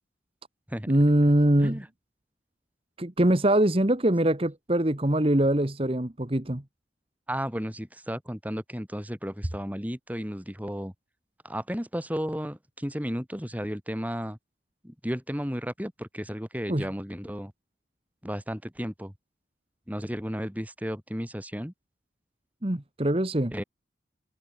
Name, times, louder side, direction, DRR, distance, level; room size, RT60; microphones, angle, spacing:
voice 1, 0.9-1.8 3.0-6.6 16.7-16.9 22.6-23.5, right 1 dB, 30° right, 1.4 m, -23 dB
voice 2, 7.3-10.9 11.4-14.4 14.8-17.5 18.2-19.1 19.9-21.7 23.5-23.6, equal, 10° right, 6.5 m, -33 dB
head